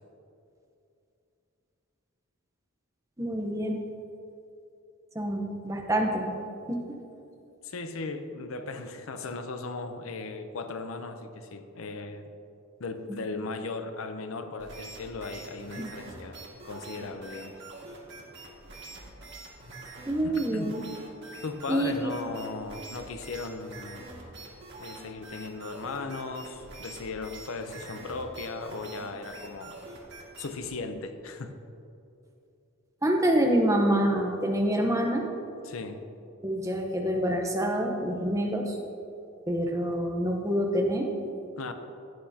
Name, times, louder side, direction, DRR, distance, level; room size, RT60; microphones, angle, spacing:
voice 1, 3.2-3.8 5.1-6.4 6.7-7.0 15.8-15.9 20.1-20.7 21.7-22.1 33.0-35.2 36.4-38.8 39.5-41.1, right 1 dB, 15° right, 1 dB, 0.9 m, -26 dB
voice 2, 7.6-12.2 12.8-17.5 20.2-20.7 21.4-24.2 24.8-29.7 30.4-31.6 35.6-36.0 41.6-41.7, left 3 dB, 75° left, 8 dB, 0.7 m, -37 dB
sound 1, 14.6-30.7, right 2 dB, 55° right, 1.8 m, -45 dB
15.5 x 8.6 x 2.8 m, 2.7 s
head